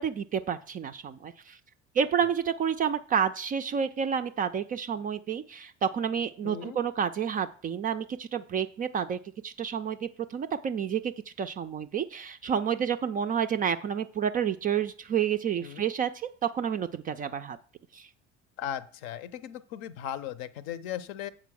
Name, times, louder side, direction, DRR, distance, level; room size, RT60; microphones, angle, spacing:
voice 1, 0.0-1.6 2.0-16.1 16.4-17.6 17.9-18.1, right 8 dB, 25° right, 9 dB, 0.4 m, -30 dB
voice 2, 6.4-6.8 15.6-15.9 18.6-21.3, left 10 dB, 50° left, 15 dB, 0.7 m, -37 dB
7.4 x 5.0 x 6.2 m, 0.43 s
figure-of-eight pair, 65°, 36 cm